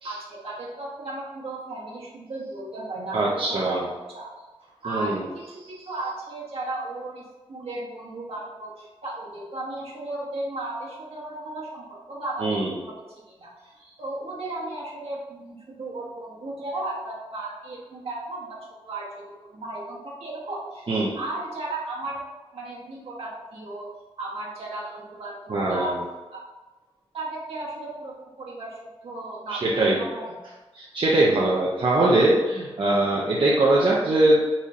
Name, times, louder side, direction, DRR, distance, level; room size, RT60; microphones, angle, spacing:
voice 1, 0.0-4.3 4.6-7.2 7.5-22.2 22.5-26.0 26.3-26.4 27.1-28.8 29.0-30.3, right 2 dB, 75° right, -6 dB, 1.2 m, -35 dB
voice 2, 3.1-3.9 4.8-5.2 12.4-12.7 20.9-21.1 25.5-26.0 29.5-30.0 30.7-34.5, right 2 dB, 55° right, -5 dB, 0.6 m, -21 dB
4.1 x 2.9 x 2.5 m, 1.2 s
cardioid pair, 70°, 10 cm